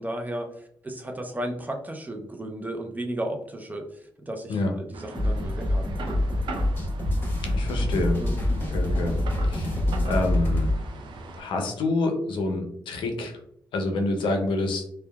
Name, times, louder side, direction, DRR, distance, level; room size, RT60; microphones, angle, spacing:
voice 1, 0.0-6.2 8.1-8.4, right 1 dB, 20° right, 4 dB, 0.5 m, -34 dB
sound 1, 4.9-11.4, right 3 dB, 75° right, 0.4 m, -40 dB
sound 2, 5.1-10.8, left 1 dB, 25° left, 1.2 m, -25 dB
voice 2, 7.5-8.2 8.7-9.2 9.5-9.8 10.0-10.7 11.3-13.4 13.7-14.8, left 2 dB, 85° left, 3 dB, 0.5 m, -27 dB
2.7 x 2.2 x 2.2 m, 0.70 s
cardioid pair, 65°, 8 cm